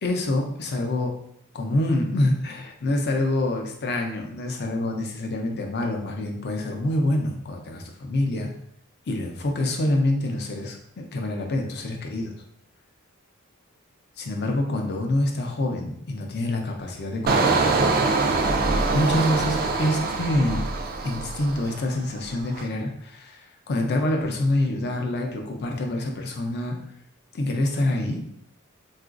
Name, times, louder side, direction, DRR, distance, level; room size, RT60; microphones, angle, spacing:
voice 1, 0.0-1.1 1.5-8.5 9.1-12.3 14.2-17.9 18.9-20.7 21.0-23.4 23.7-26.8 27.3-28.2, left 1 dB, 50° left, 2 dB, 0.5 m, -26 dB
Engine, 17.3-21.9 22.3-22.6, right 3 dB, 45° right, 0.3 m, -24 dB
3.8 x 2.4 x 2.4 m, 0.71 s
head